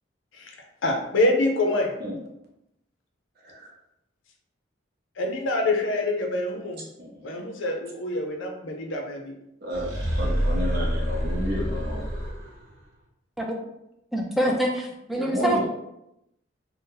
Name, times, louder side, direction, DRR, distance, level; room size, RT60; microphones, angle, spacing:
voice 1, 0.8-1.9 5.2-6.9 7.2-9.3, left 2 dB, 75° left, 2 dB, 0.6 m, -26 dB
voice 2, 7.0-7.3 9.6-9.9 10.2-12.1 14.4-14.5 15.2-15.7, equal, 50° right, -1 dB, 0.7 m, -31 dB
sound 1, 9.7-12.7, equal, 90° right, 0.8 m, -27 dB
voice 3, 14.1-15.7, equal, ahead, 0 dB, 0.3 m, -25 dB
2.7 x 2.1 x 3.7 m, 0.83 s
head